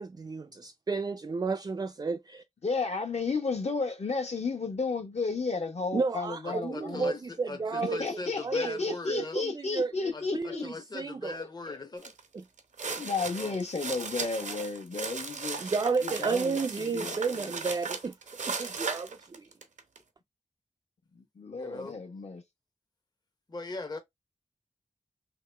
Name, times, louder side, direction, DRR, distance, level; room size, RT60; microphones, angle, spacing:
voice 1, 0.0-2.4 5.9-8.0 8.4-8.8 9.1-11.4 12.3-12.4 15.6-18.1 18.5-19.5, right 4 dB, 35° right, 0.4 m, -32 dB
voice 2, 2.6-7.1 7.8-10.6 11.4-11.8 12.8-15.7 16.0-17.5 21.1-22.4, left 4 dB, 60° left, 1.1 m, -33 dB
voice 3, 6.5-7.2 7.5-9.4 10.1-12.1 13.4-13.6 21.6-22.0 23.5-24.0, left 3 dB, 35° left, 0.7 m, -40 dB
sound 1, 12.0-12.2 12.6-20.0, right 5 dB, 85° right, 0.8 m, -37 dB
3.0 x 2.9 x 3.3 m
wide cardioid pair, 70°, 13 cm